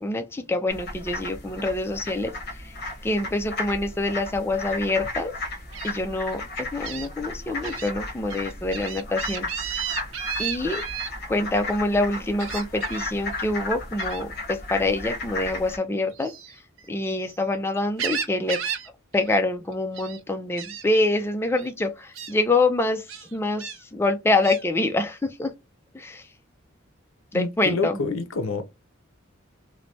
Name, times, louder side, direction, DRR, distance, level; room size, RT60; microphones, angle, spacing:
voice 1, 0.0-2.3 2.6-2.7 3.0-5.3 5.8-9.5 10.4-10.8 11.3-16.3 16.9-18.6 19.1-23.0 23.3-25.5 25.9-26.2 27.3-28.0, left 2 dB, 10° left, 0.3 m, -25 dB
sound 1, 0.7-15.8, left 2 dB, 55° left, 1.2 m, -34 dB
Gull seagull, 5.7-5.9 6.8-7.1 7.6-7.9 8.3-11.1 12.4-13.1 14.0-14.3 16.1-17.4 17.7-18.9 19.1-19.4 19.7-20.2 20.6-20.8 21.6-21.7 22.1-22.3 23.1-23.8 24.4-24.6, right 8 dB, 70° right, 0.5 m, -33 dB
voice 2, 27.3-28.6, left 3 dB, 85° left, 0.5 m, -27 dB
3.1 x 2.1 x 2.6 m
head